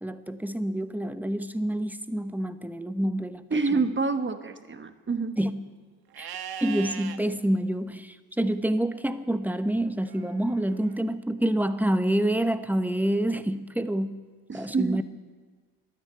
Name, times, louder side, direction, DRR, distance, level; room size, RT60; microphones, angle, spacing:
voice 1, 0.0-3.9 5.4-5.6 6.2-6.3 6.6-14.2 14.5-15.0, right 1 dB, 5° right, 10 dB, 1.0 m, -27 dB
voice 2, 3.5-5.4 14.5-15.0, right 4 dB, 25° right, 9 dB, 1.3 m, -27 dB
Livestock farm animals working animals, 6.1-7.2 10.0-11.0, right 9 dB, 55° right, 1.2 m, -40 dB
12.5 x 10.5 x 9.7 m, 1.4 s
supercardioid pair, 60°, 45 cm